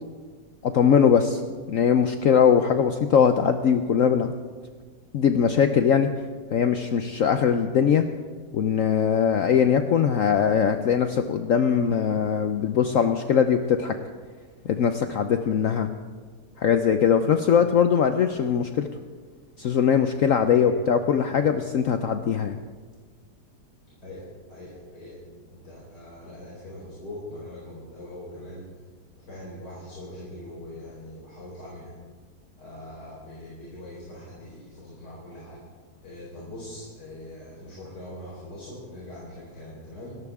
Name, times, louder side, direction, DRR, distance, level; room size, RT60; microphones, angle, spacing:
voice 1, 0.6-1.4 1.7-4.3 5.1-6.1 6.5-8.0 8.5-14.0 14.6-15.9 16.6-18.9 19.6-22.6, left 7 dB, 60° left, 7 dB, 1.0 m, -21 dB
voice 2, 24.0-25.2 25.5-28.6 29.3-32.0 32.6-35.6 36.0-40.1, left 1 dB, 80° left, -6 dB, 5.0 m, -42 dB
28.5 x 14.0 x 3.6 m, 1.5 s
omnidirectional pair, 1.8 m